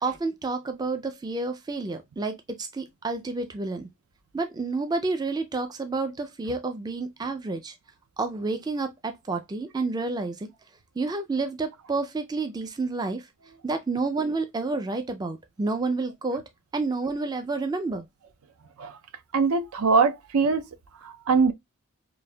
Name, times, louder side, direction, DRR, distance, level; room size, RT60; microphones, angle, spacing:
voice 1, 0.0-3.9 4.3-7.7 8.2-10.5 11.0-13.2 13.6-16.4 16.7-18.1, right 3 dB, 20° right, 0.3 m, -29 dB
voice 2, 19.3-20.6 21.3-21.5, right 4 dB, 80° right, 0.5 m, -21 dB
5.1 x 2.5 x 2.2 m
head